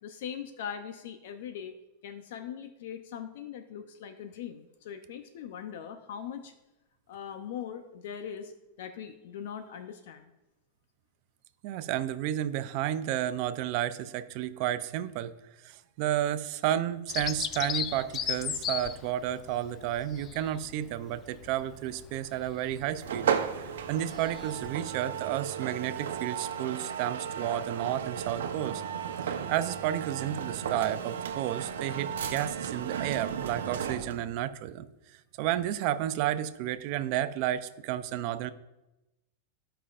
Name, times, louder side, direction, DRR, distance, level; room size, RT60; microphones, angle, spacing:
voice 1, 0.0-1.8 2.0-6.5 7.1-8.5 8.8-10.3, left 8 dB, 70° left, 8 dB, 0.7 m, -41 dB
voice 2, 11.6-15.3 15.6-23.3 23.9-28.8 29.5-34.9 35.4-38.5, right 12 dB, 50° right, 12 dB, 0.5 m, -31 dB
Bird vocalization bird call bird song, 17.1-24.9, left 8 dB, 30° left, 0.4 m, -38 dB
sound 1, 23.0-34.3, right 8 dB, 90° right, 0.8 m, -34 dB
14.5 x 5.6 x 2.5 m, 0.97 s
supercardioid pair, 140°, 0 cm